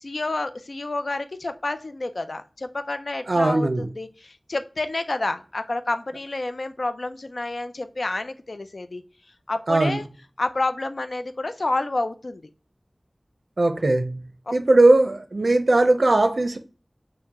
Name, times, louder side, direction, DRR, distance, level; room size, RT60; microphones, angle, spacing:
voice 1, 0.0-9.0 9.5-10.0 10.4-12.4 14.5-14.6, left 2 dB, 85° left, 0.4 m, -29 dB
voice 2, 3.3-3.9 9.7-10.0 13.6-14.2 14.5-16.6, right 2 dB, 80° right, 0.5 m, -19 dB
4.5 x 2.1 x 3.5 m
wide cardioid pair, 50°, 0 cm